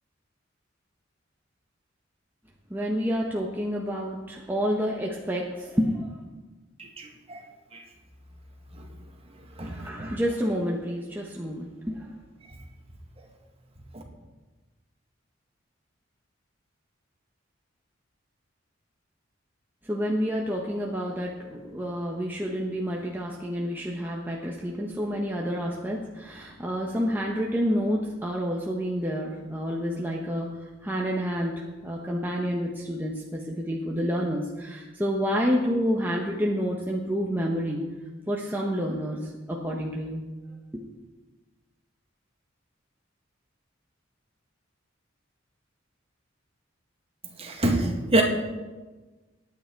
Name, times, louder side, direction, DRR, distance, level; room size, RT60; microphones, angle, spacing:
voice 1, 2.7-6.2 9.6-12.1 19.8-37.8 38.3-40.2, equal, 10° right, -2 dB, 1.2 m, -29 dB
voice 2, 6.8-7.4 7.7-7.8 8.7-8.9 9.6-10.1 13.9-14.0 47.4-48.2, right 1 dB, 30° right, 1 dB, 2.1 m, -27 dB
22.0 x 9.4 x 4.7 m, 1.2 s
head